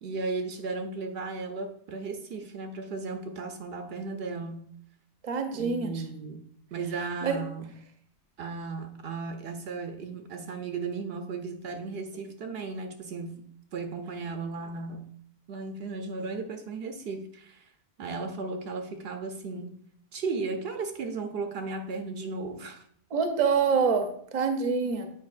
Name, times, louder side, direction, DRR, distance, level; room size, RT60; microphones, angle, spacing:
voice 1, 0.0-4.7 5.5-6.4 6.7-7.7 8.4-13.4 13.7-15.1 15.5-17.7 18.0-19.7 20.1-22.8, right 4 dB, 70° right, 6 dB, 0.8 m, -35 dB
voice 2, 5.2-5.9 7.2-7.4 23.1-25.1, right 5 dB, 40° right, 6 dB, 0.7 m, -26 dB
8.2 x 4.8 x 2.4 m, 0.63 s
omnidirectional pair, 1.1 m